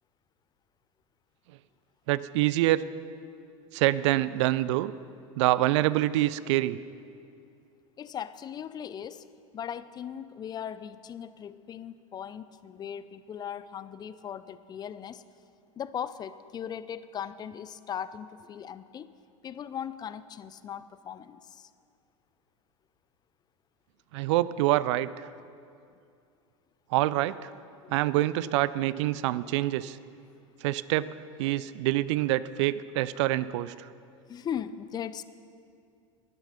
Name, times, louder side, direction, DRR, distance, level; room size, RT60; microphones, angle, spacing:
voice 1, 2.1-2.8 3.7-4.9 5.4-6.8 24.1-25.3 26.9-27.5 27.9-30.0 30.6-31.1 31.4-33.9, right 15 dB, 60° right, 17 dB, 0.4 m, -26 dB
voice 2, 8.0-9.3 9.5-15.2 15.8-19.1 19.4-21.7 27.8-28.0 28.8-28.9 34.3-35.2, left 8 dB, 25° left, 15 dB, 0.5 m, -38 dB
11.5 x 9.6 x 5.7 m, 2.4 s
hypercardioid pair, 90°, 17 cm